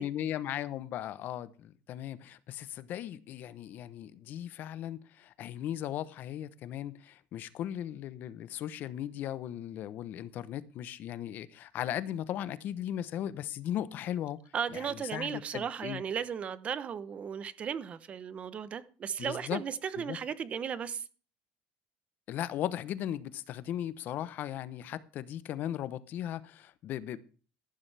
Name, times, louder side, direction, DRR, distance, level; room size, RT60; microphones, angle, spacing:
voice 1, 0.0-14.4 14.7-16.0 19.2-19.6 20.0-20.2 22.3-27.2, left 11 dB, 45° left, 0.8 m, -37 dB
voice 2, 14.5-21.0, right 7 dB, 30° right, 0.8 m, -36 dB
14.0 x 11.5 x 3.4 m
cardioid pair, 160°, 4 cm